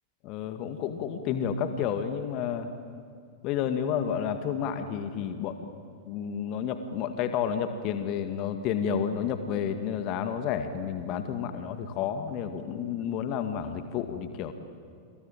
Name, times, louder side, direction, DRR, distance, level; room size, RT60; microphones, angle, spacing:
voice 1, 0.2-2.7 3.4-5.6 6.1-14.5, left 8 dB, 40° left, 8 dB, 2.1 m, -30 dB
28.5 x 22.5 x 9.0 m, 2.3 s
figure-of-eight pair, 90°, 0 cm